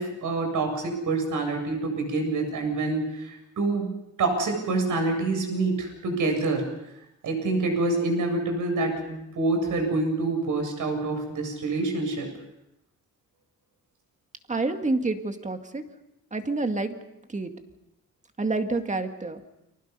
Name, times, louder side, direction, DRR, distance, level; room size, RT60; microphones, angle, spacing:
voice 1, 0.0-3.9 4.2-6.7 7.2-12.3, right 3 dB, 75° right, 4 dB, 7.6 m, -26 dB
voice 2, 14.5-15.9 16.3-17.0 17.3-17.5 18.4-19.4, right 3 dB, 25° right, 6 dB, 2.0 m, -28 dB
29.5 x 24.5 x 5.5 m, 0.86 s
cardioid pair, 120°, 32 cm